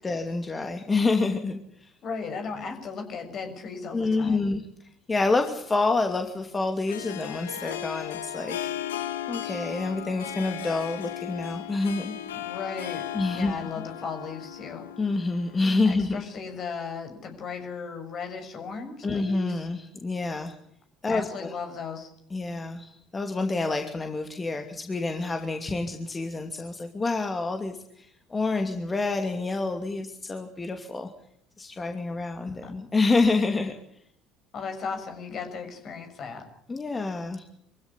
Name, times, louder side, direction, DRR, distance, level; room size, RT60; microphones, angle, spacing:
voice 1, 0.0-1.9 3.9-4.6 5.1-8.7 9.3-12.2 13.1-13.5 15.0-16.2 19.0-20.5 21.0-21.5 22.3-31.1 31.6-33.7 36.7-37.4, left 3 dB, 25° left, 5 dB, 2.7 m, -27 dB
voice 2, 2.0-4.5 12.3-14.9 15.8-19.7 21.1-22.1 32.4-32.7 34.5-36.4, left 5 dB, 50° left, 6 dB, 6.7 m, -36 dB
Harp, 5.5-15.9, left 12 dB, 90° left, 1.4 m, -36 dB
24.5 x 16.0 x 10.0 m, 0.69 s
hypercardioid pair, 65°, 0 cm